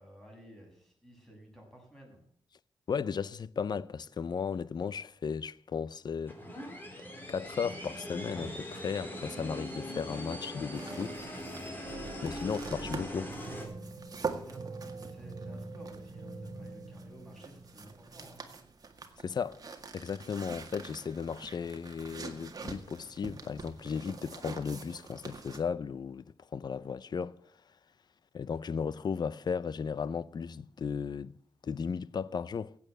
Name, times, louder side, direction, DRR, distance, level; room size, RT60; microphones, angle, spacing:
voice 1, 0.0-2.2 14.2-18.4, equal, 5° left, 7.0 m, -54 dB
voice 2, 2.9-6.4 7.3-11.3 12.2-13.3 19.2-19.6 19.9-27.4 28.3-31.3 31.6-32.8, left 6 dB, 50° left, 0.6 m, -35 dB
sound 1, 6.3-13.7, left 1 dB, 20° left, 3.8 m, -41 dB
sound 2, 10.7-25.6, right 4 dB, 45° right, 1.9 m, -45 dB
sound 3, 11.2-11.5 11.8-18.5, right 3 dB, 60° right, 2.8 m, -46 dB
15.5 x 8.7 x 7.6 m
cardioid pair, 95°, 9 cm